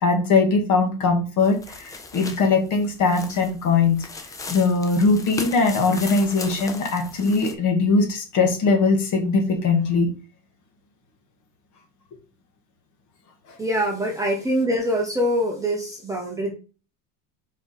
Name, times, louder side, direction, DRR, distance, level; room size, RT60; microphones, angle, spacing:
voice 1, 0.0-4.0 4.5-10.1 13.5-13.6, left 4 dB, 40° left, 3 dB, 1.9 m, -21 dB
sound 1, 1.4-7.5, left 3 dB, 10° left, 0.3 m, -37 dB
voice 2, 13.6-16.5, equal, 5° right, -1 dB, 1.0 m, -24 dB
5.0 x 4.6 x 4.1 m, 0.34 s
supercardioid pair, 150°, 46 cm